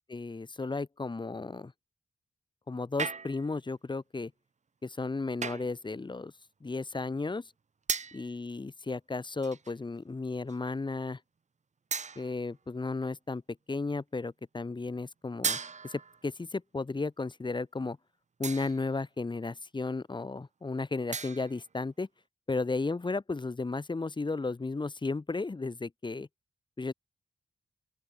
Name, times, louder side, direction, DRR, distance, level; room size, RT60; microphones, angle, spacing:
voice 1, 0.1-1.7 2.7-4.3 4.8-6.3 6.6-7.5 8.1-11.2 12.2-13.4 13.7-18.0 18.4-22.1 22.5-26.3 26.8-26.9, left 3 dB, 25° left, 1.1 m, -34 dB
sound 1, 3.0-3.6 5.4-5.8 7.9-8.3 9.4-9.8 10.5-10.6 11.9-12.5 15.4-16.3 18.4-18.9 21.1-21.7, right 5 dB, 40° right, 0.9 m, -36 dB
open air
cardioid pair, 75°, 18 cm